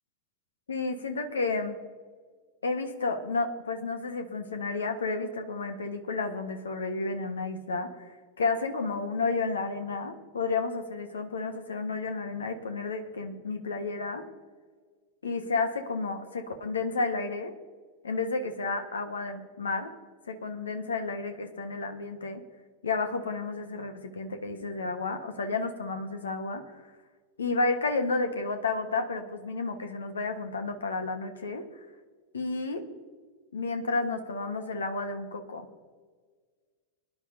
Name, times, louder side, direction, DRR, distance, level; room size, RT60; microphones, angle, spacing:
voice 1, 0.7-1.7 2.6-14.2 15.2-17.5 18.0-19.9 20.3-22.4 22.8-26.6 27.4-31.6 32.3-32.8 33.5-35.7, left 3 dB, 70° left, 7 dB, 1.3 m, -31 dB
24.0 x 10.5 x 2.7 m, 1.5 s
figure-of-eight pair, 90°, 0 cm